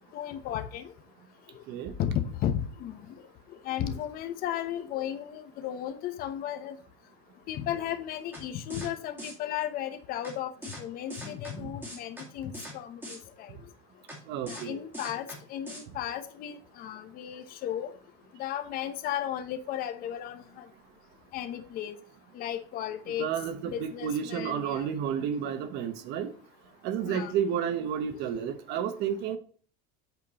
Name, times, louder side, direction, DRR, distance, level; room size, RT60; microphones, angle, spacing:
voice 1, 0.1-0.9 2.0-3.0 3.6-6.8 7.5-13.5 14.4-17.9 18.4-20.6 21.3-22.0 22.3-23.3 23.7-24.9 27.0-27.4 28.1-28.2, left 10 dB, 45° left, 9 dB, 1.0 m, -34 dB
sound 1, 8.3-8.4 8.7-8.9 9.2-9.3 10.2-10.3 10.6-10.8 11.1-11.5 11.8-12.2 12.5-12.7 13.0-13.2 14.1-14.2 14.5-14.6 14.9-15.4 15.7-15.8, equal, 10° right, 2.4 m, -41 dB
voice 2, 14.3-14.8 23.2-26.3 26.8-29.4, right 8 dB, 55° right, 9 dB, 1.1 m, -31 dB
8.2 x 4.4 x 4.2 m, 0.43 s
cardioid pair, 160°, 21 cm